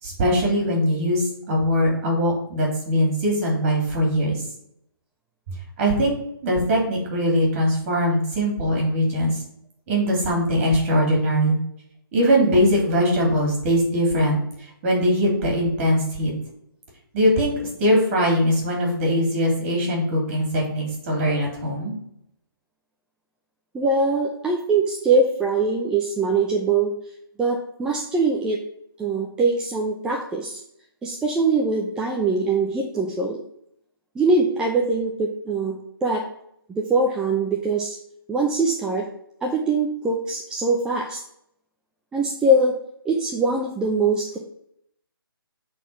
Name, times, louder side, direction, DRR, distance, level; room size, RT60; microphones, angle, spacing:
voice 1, 0.0-4.4 5.8-6.1 6.4-9.4 9.9-11.6 12.1-16.3 17.1-17.5 17.8-21.9, equal, 30° right, -1 dB, 3.5 m, -21 dB
voice 2, 23.7-26.9 27.4-28.6 29.0-30.6 31.0-33.4 34.1-36.2 36.7-38.0 38.3-39.1 39.4-41.2 42.1-42.7 43.0-44.4, right 3 dB, 5° right, -1 dB, 0.7 m, -22 dB
7.9 x 4.4 x 5.9 m, 0.72 s
figure-of-eight pair, 150°, 12 cm